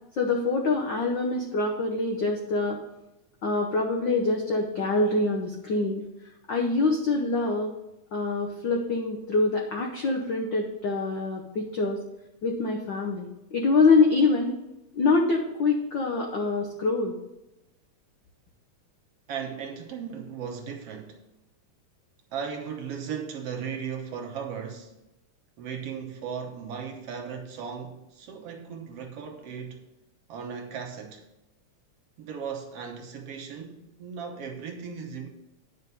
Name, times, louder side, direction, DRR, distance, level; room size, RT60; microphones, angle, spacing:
voice 1, 0.2-2.8 3.4-6.0 6.5-7.7 8.1-12.0 12.4-14.6 14.9-17.2, left 3 dB, 70° left, 1.1 m, -25 dB
voice 2, 19.3-21.2 22.3-24.9 25.6-29.8 30.3-31.3 32.2-35.3, right 7 dB, 65° right, 1.9 m, -37 dB
9.6 x 5.7 x 5.5 m
omnidirectional pair, 3.3 m